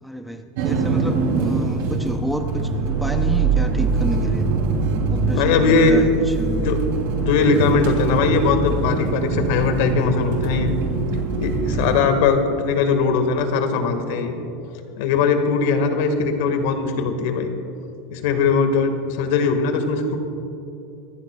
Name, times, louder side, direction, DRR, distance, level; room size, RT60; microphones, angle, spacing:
voice 1, 0.0-4.5 5.1-6.7, equal, ahead, 4 dB, 0.5 m, -29 dB
sound 1, 0.6-12.0, right 4 dB, 65° right, 2.8 m, -23 dB
voice 2, 5.3-6.0 6.6-6.8 7.2-10.8 11.4-14.4 15.0-17.5 18.1-20.2, left 4 dB, 65° left, 6 dB, 1.6 m, -20 dB
24.5 x 15.0 x 2.3 m, 2.9 s
supercardioid pair, 165°, 0 cm